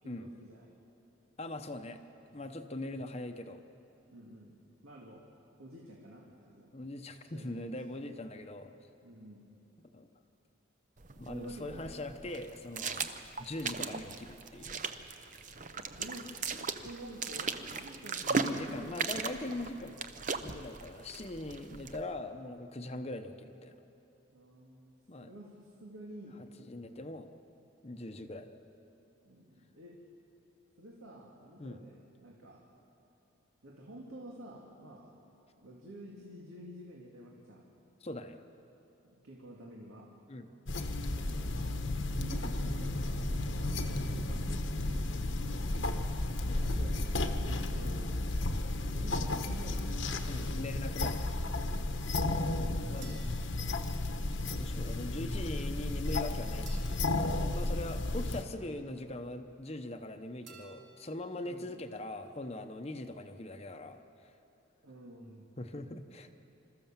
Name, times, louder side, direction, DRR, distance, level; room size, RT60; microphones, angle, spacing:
voice 1, 0.0-0.7 4.1-4.5 4.8-5.3 5.6-6.7 7.2-8.1 9.0-9.5 11.3-12.1 12.9-13.1 16.0-16.3 16.8-19.5 24.3-26.4 27.9-28.3 29.2-30.0 30.8-32.6 33.6-35.1 35.6-37.7 39.2-40.1 41.1-41.7 42.1-46.1 46.6-48.1 48.8-50.1 52.8-53.2 57.6-58.2 61.4-61.8 64.8-65.5, right 1 dB, 90° right, -2 dB, 2.2 m, -50 dB
voice 2, 1.4-2.0 2.3-3.6 6.7-8.7 9.9-10.1 11.2-13.1 13.4-15.0 18.3-20.0 20.4-23.8 25.1-25.3 26.7-27.3 27.8-28.5 31.6-31.8 38.0-38.4 40.3-40.5 46.5-46.6 50.3-51.3 52.5-53.2 54.6-57.0 57.5-64.4 65.6-66.3, left 1 dB, 30° left, 7 dB, 0.8 m, -41 dB
sound 1, 11.0-22.0, right 5 dB, 40° right, 0.8 m, -38 dB
sound 2, 40.7-58.4, left 2 dB, 65° left, 1.1 m, -33 dB
sound 3, 53.0-54.5 56.7-58.5 60.5-61.6, right 5 dB, 55° right, 3.3 m, -57 dB
27.0 x 14.0 x 7.4 m, 2.9 s
head